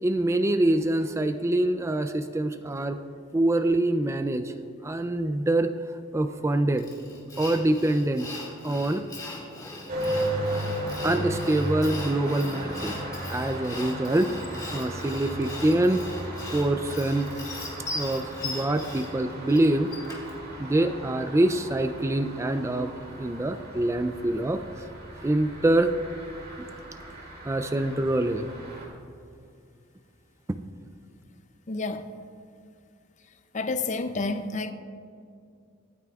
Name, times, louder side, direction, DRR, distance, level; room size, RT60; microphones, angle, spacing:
voice 1, 0.0-3.0 3.3-4.5 4.8-5.7 6.1-6.9 7.4-9.0 11.0-13.0 13.3-14.3 14.7-16.0 16.5-17.3 17.9-20.1 20.6-22.9 23.2-24.6 25.2-25.9 27.4-28.5, right 1 dB, 15° right, 0.3 m, -25 dB
Sawing, 6.8-20.4, left 2 dB, 20° left, 2.1 m, -39 dB
sound 1, 9.9-28.9, right 1 dB, 50° right, 2.5 m, -36 dB
voice 2, 31.7-32.1 33.5-34.7, left 3 dB, 35° left, 0.5 m, -29 dB
24.0 x 9.3 x 2.4 m
head